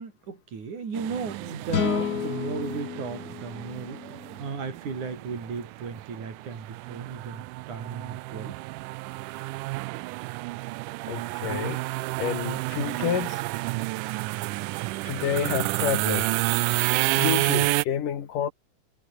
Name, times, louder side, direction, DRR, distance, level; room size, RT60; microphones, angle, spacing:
voice 1, 0.0-4.0 4.4-8.6, right 5 dB, 70° right, 6.0 m, -35 dB
sound 1, 0.9-17.8, right 21 dB, 85° right, 2.1 m, -30 dB
sound 2, 1.7-5.0, left 8 dB, 60° left, 1.0 m, -32 dB
voice 2, 11.0-11.8 12.2-13.4 15.1-16.4 17.2-18.5, left 9 dB, 85° left, 3.9 m, -29 dB
omnidirectional pair, 3.6 m